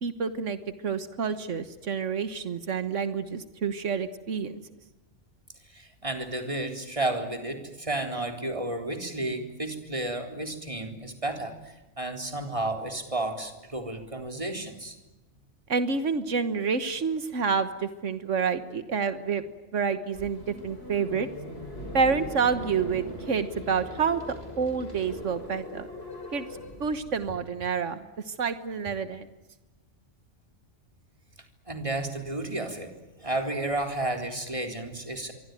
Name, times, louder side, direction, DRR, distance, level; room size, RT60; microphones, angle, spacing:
voice 1, 0.0-4.6 15.7-19.4 19.7-21.3 21.9-25.9 26.3-26.5 26.8-29.3, right 5 dB, 90° right, 11 dB, 1.7 m, -28 dB
voice 2, 5.7-14.9 31.7-32.9 33.2-35.3, right 2 dB, 25° right, 4 dB, 4.0 m, -32 dB
sound 1, 20.1-27.3, left 1 dB, 55° left, 6.7 m, -40 dB
26.0 x 24.0 x 9.3 m, 1.1 s
omnidirectional pair, 1.2 m